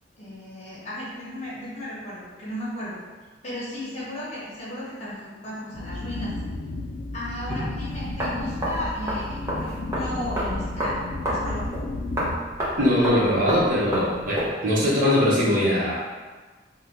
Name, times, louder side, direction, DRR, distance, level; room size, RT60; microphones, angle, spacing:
voice 1, 0.2-3.0 3.4-6.3 7.1-11.0 11.3-11.6, left 1 dB, 40° left, -8 dB, 1.0 m, -35 dB
sound 1, 5.7-12.4, left 2 dB, 60° left, 0.3 m, -33 dB
sound 2, 7.9-14.5, equal, 15° right, 0.7 m, -30 dB
voice 2, 12.8-16.0, left 1 dB, 50° right, -6 dB, 0.9 m, -21 dB
2.8 x 2.2 x 3.5 m, 1.3 s
head